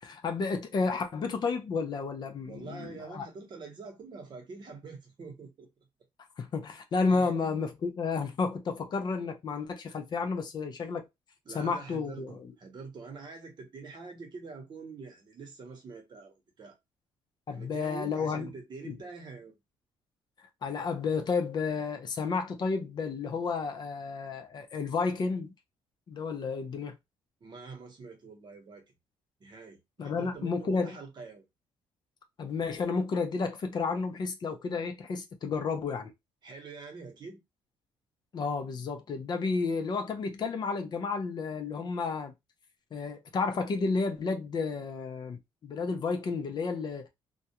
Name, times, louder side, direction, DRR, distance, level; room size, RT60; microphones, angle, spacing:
voice 1, 0.0-3.3 6.4-11.1 11.5-12.3 17.5-18.5 18.8-18.9 20.6-25.5 26.1-27.0 30.0-30.9 32.4-36.1 38.3-42.3 42.9-47.1, left 4 dB, 45° left, 0.6 m, -31 dB
voice 2, 2.4-5.7 7.1-7.3 11.4-16.8 17.5-19.6 27.4-28.9 29.4-31.4 36.4-37.4, right 4 dB, 45° right, 1.0 m, -45 dB
2.3 x 2.2 x 2.9 m
cardioid pair, 115°, 10 cm